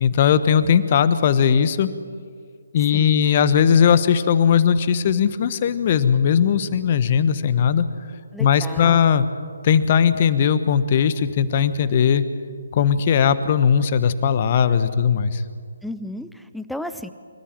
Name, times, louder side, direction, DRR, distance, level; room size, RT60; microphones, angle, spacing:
voice 1, 0.0-1.9 2.7-7.8 8.4-9.3 9.6-12.2 12.7-15.4, left 7 dB, 40° left, 13 dB, 1.1 m, -18 dB
voice 2, 8.3-9.1 15.8-17.1, left 1 dB, ahead, 11 dB, 0.8 m, -33 dB
25.5 x 14.0 x 9.0 m, 2.1 s
figure-of-eight pair, 145°, 0 cm